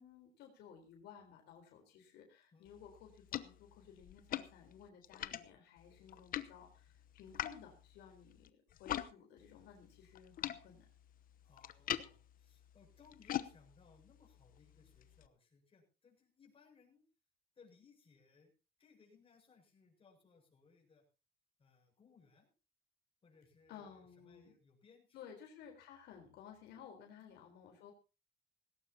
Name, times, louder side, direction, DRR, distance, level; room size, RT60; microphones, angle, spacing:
voice 1, 0.0-10.9 23.7-24.5 25.1-27.9, left 8 dB, 80° left, 3 dB, 4.0 m, -56 dB
sound 1, 2.7-9.1 9.4-15.3, left 12 dB, 55° left, 1.0 m, -45 dB
voice 2, 11.4-17.0 17.6-18.5 18.8-21.1 21.6-22.5 23.2-25.4 27.2-27.4, left 5 dB, 35° left, 1 dB, 7.2 m, -66 dB
18.5 x 17.0 x 2.8 m, 0.31 s
cardioid pair, 110°, 17 cm